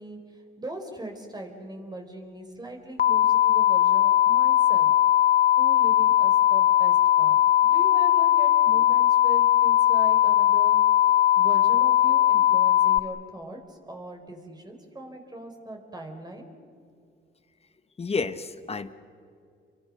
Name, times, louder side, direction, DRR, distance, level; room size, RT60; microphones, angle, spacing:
voice 1, 0.0-4.9 5.6-10.8 11.3-16.5, right 1 dB, 20° right, 3 dB, 4.9 m, -40 dB
sound 1, 3.0-13.0, left 12 dB, 50° left, 0.8 m, -19 dB
voice 2, 18.0-18.9, left 4 dB, 30° left, 11 dB, 1.3 m, -30 dB
29.5 x 23.5 x 6.6 m, 2.3 s
cardioid pair, 90°, 20 cm